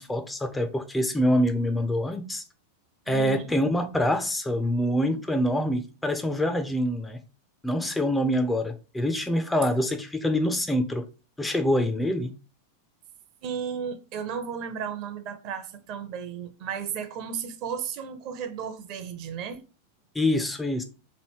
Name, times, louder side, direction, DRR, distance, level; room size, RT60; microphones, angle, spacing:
voice 1, 0.0-2.4 3.1-7.2 7.6-11.0 11.4-12.3 20.2-20.8, left 1 dB, 5° left, 0.4 m, -25 dB
voice 2, 3.1-3.5 13.4-19.6, right 7 dB, 40° right, 0.6 m, -34 dB
3.2 x 2.6 x 4.4 m
figure-of-eight pair, 90°, 0 cm